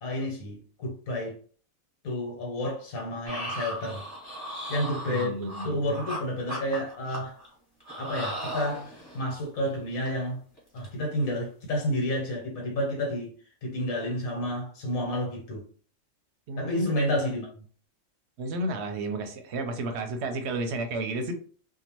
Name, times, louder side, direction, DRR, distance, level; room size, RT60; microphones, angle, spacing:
voice 1, 0.0-1.4 2.0-4.1 4.7-5.4 5.6-7.4 8.0-10.4 10.7-13.3 13.6-15.7 16.6-17.5, left 1 dB, 85° left, 1.4 m, -30 dB
sound 1, 3.3-6.2 6.5-7.5 7.8-9.2 9.6-9.8 10.0-10.3 10.6-10.9 11.2-11.4, right 1 dB, 20° left, 1.2 m, -37 dB
voice 2, 5.1-5.8 16.5-16.9 18.4-21.3, right 2 dB, 65° right, 0.8 m, -32 dB
2.7 x 2.2 x 2.9 m
omnidirectional pair, 1.4 m